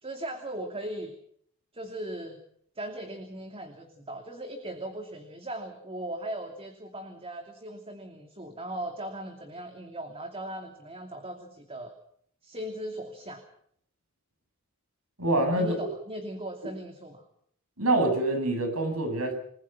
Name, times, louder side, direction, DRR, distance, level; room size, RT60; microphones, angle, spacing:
voice 1, 0.0-1.1 1.7-2.4 2.8-11.9 12.4-13.4 15.5-17.3, right 1 dB, 25° right, 5 dB, 2.8 m, -38 dB
voice 2, 15.2-15.8 17.8-19.3, right 2 dB, 75° right, 6 dB, 7.9 m, -25 dB
28.5 x 21.0 x 5.9 m, 0.65 s
head